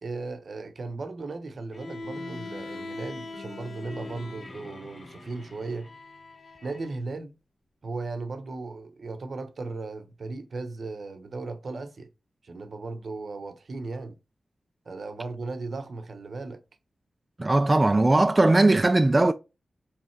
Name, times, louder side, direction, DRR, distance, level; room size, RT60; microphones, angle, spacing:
voice 1, 0.0-5.9 6.6-7.3 7.8-12.1 12.4-14.2 14.9-16.6, right 3 dB, 65° right, 0.9 m, -36 dB
Bowed string instrument, 1.7-6.9, left 3 dB, 55° left, 0.7 m, -42 dB
sound 1, 2.0-6.0, left 2 dB, 20° left, 2.1 m, -47 dB
voice 2, 17.4-19.3, right 2 dB, 25° right, 0.3 m, -19 dB
3.7 x 3.2 x 3.1 m
cardioid pair, 70°, 0 cm